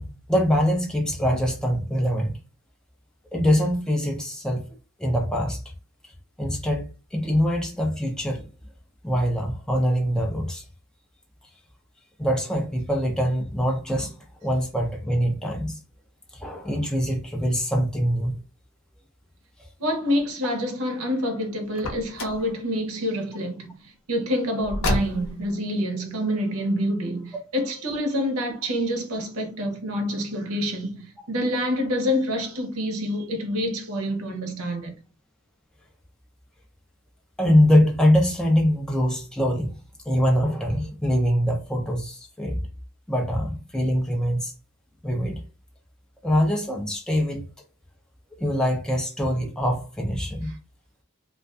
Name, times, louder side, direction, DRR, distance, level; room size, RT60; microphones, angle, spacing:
voice 1, 0.0-2.3 3.3-4.6 5.0-5.6 6.0-6.1 6.4-8.4 9.0-10.6 12.2-14.1 14.4-15.8 16.3-18.3 37.4-39.8 40.1-42.6 43.1-44.5 45.0-45.4 46.2-47.5 48.4-50.5, equal, 5° left, 0.4 m, -23 dB
voice 2, 19.8-34.9, equal, 75° right, 0.7 m, -27 dB
Car, 21.7-22.5 24.6-25.5, left 1 dB, 70° left, 0.6 m, -28 dB
2.4 x 2.3 x 2.3 m
head